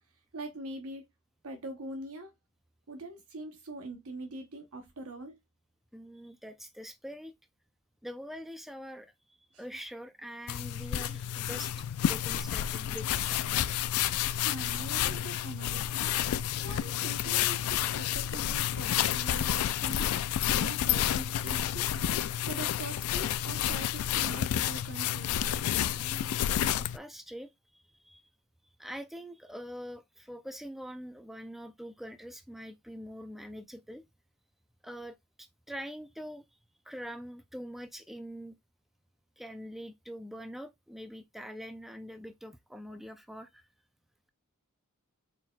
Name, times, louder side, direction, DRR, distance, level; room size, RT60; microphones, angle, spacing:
voice 1, 0.3-1.0 1.4-2.3 2.9-5.4 9.5-9.6 14.3-16.1 16.6-20.1 20.5-22.0 22.5-25.4, right 2 dB, 70° right, 0.9 m, -43 dB
voice 2, 5.9-7.3 8.0-13.6 25.9-28.3 28.8-34.0 34.8-36.4 36.9-38.5 39.4-43.6, equal, ahead, 0.4 m, -44 dB
sound 1, 10.5-27.0, left 11 dB, 75° left, 0.3 m, -30 dB
4.2 x 4.1 x 2.2 m
head